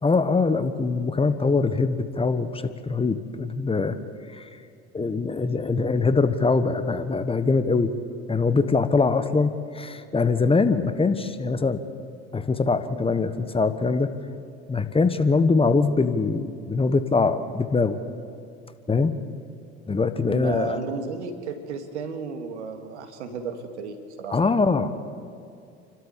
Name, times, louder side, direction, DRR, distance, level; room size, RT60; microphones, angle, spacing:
voice 1, 0.0-4.0 4.3-4.5 4.9-7.9 8.3-11.8 12.3-14.1 14.7-18.0 18.9-19.2 19.9-20.8 24.3-24.9, left 4 dB, 15° left, 10 dB, 1.2 m, -23 dB
voice 2, 20.2-24.3, right 5 dB, 85° right, 6 dB, 2.1 m, -33 dB
28.5 x 12.5 x 7.3 m, 2.5 s
hypercardioid pair, 80°, 34 cm